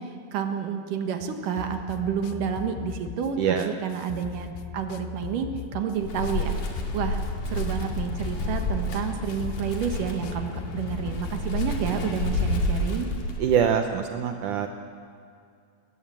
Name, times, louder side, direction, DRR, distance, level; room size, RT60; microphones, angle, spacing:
voice 1, 0.0-6.6 6.9-7.2 7.5-13.1, right 7 dB, 60° right, 6 dB, 2.6 m, -30 dB
sound 1, 1.6-12.2, left 10 dB, 80° left, 2.7 m, -40 dB
voice 2, 3.4-3.7 13.4-14.7, right 8 dB, 85° right, 6 dB, 1.7 m, -24 dB
Wind, 5.9-13.7, left 1 dB, 50° left, 3.4 m, -30 dB
22.0 x 19.0 x 7.7 m, 2.3 s
omnidirectional pair, 4.9 m